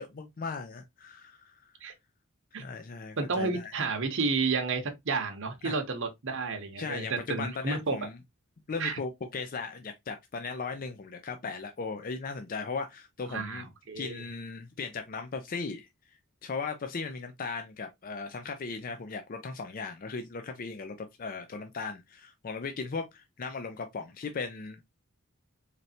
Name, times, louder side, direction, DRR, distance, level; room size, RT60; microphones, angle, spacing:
voice 1, 0.0-1.7 2.6-3.7 5.6-5.8 6.8-8.2 8.7-13.7 13.9-15.9 16.4-24.9, left 4 dB, 40° left, 0.5 m, -37 dB
voice 2, 3.2-8.0 8.8-9.0 13.3-14.2, right 4 dB, 60° right, 0.8 m, -31 dB
4.1 x 3.2 x 2.7 m
head